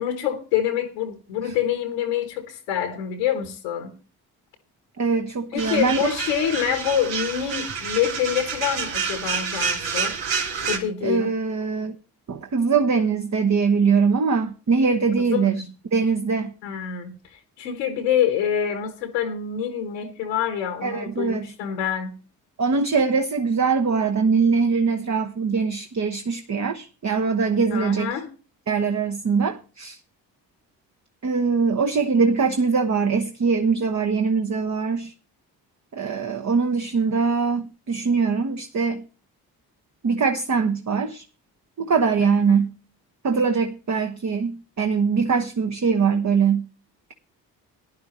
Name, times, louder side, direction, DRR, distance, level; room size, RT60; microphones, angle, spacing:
voice 1, 0.0-3.9 5.5-10.1 10.7-11.3 15.2-15.7 16.6-17.1 17.6-22.1 27.7-28.3 42.2-42.6, left 9 dB, 85° left, 1.4 m, -26 dB
voice 2, 5.0-6.0 11.0-11.9 12.3-15.6 15.9-16.5 20.8-21.5 22.6-28.1 28.7-30.0 31.2-35.1 35.9-39.0 40.0-41.2 41.8-42.7 43.2-46.7, right 5 dB, 35° right, 1.1 m, -22 dB
sound 1, 5.6-10.8, right 6 dB, 65° right, 1.9 m, -28 dB
16.0 x 10.5 x 3.1 m
hypercardioid pair, 40°, 47 cm